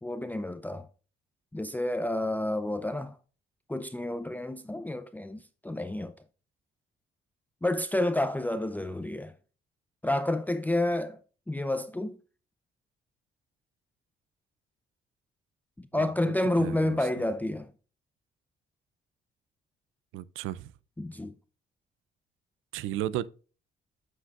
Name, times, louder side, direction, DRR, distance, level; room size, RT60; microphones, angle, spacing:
voice 1, 0.0-0.8 1.5-3.2 3.7-6.1 7.6-9.3 10.0-11.2 11.5-12.2 15.9-17.7 21.0-21.3, left 1 dB, 10° left, 0.5 m, -29 dB
voice 2, 15.9-17.0 20.1-20.7 22.7-23.3, right 13 dB, 90° right, 0.5 m, -35 dB
9.4 x 6.5 x 2.4 m
cardioid pair, 90°, 20 cm